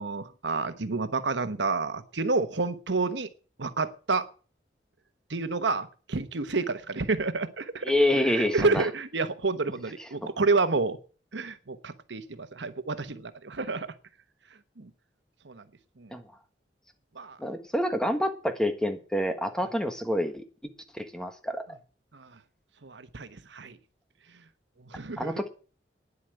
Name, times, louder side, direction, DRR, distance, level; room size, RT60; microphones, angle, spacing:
voice 1, 0.0-3.3 3.6-4.3 5.3-7.9 8.2-11.0 11.3-13.9 14.8-14.9 15.4-15.6 16.0-16.1 17.1-17.4 22.1-22.3 22.8-23.8 24.8-25.3, right 3 dB, 85° right, 11 dB, 1.1 m, -29 dB
voice 2, 7.8-8.8 10.2-10.3 16.1-16.2 17.4-20.4 20.9-21.8 25.2-25.5, left 1 dB, 5° left, 7 dB, 1.4 m, -27 dB
9.9 x 8.3 x 7.8 m, 0.37 s
head